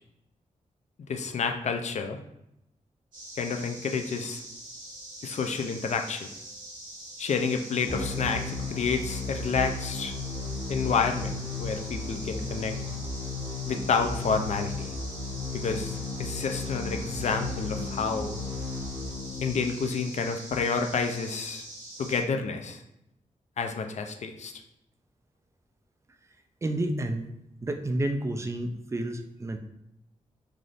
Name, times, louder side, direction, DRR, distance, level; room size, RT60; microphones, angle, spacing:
voice 1, 1.1-2.2 3.4-4.4 5.2-6.3 7.2-10.1 10.7-12.7 13.7-14.9 15.5-18.3 19.4-21.7 22.0-22.8 23.6-24.5, left 5 dB, 60° left, 5 dB, 0.4 m, -29 dB
sound 1, 3.1-22.2, right 1 dB, 85° right, 1.3 m, -44 dB
sound 2, 7.9-19.8, left 3 dB, 80° left, 0.9 m, -35 dB
voice 2, 26.6-27.3 27.6-29.6, right 1 dB, 20° right, 6 dB, 0.3 m, -30 dB
3.3 x 2.5 x 2.4 m, 0.83 s
cardioid pair, 70°, 14 cm